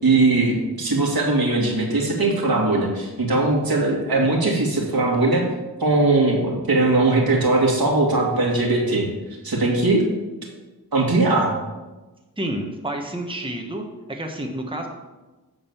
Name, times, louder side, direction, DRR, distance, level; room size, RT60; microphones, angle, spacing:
voice 1, 0.0-5.4 5.8-9.1 9.4-10.0 10.9-11.6, right 2 dB, 65° right, -1 dB, 2.3 m, -20 dB
voice 2, 12.4-13.8 14.1-14.9, right 1 dB, 15° right, 2 dB, 1.3 m, -29 dB
8.8 x 4.0 x 7.1 m, 1.2 s
cardioid pair, 40°, 38 cm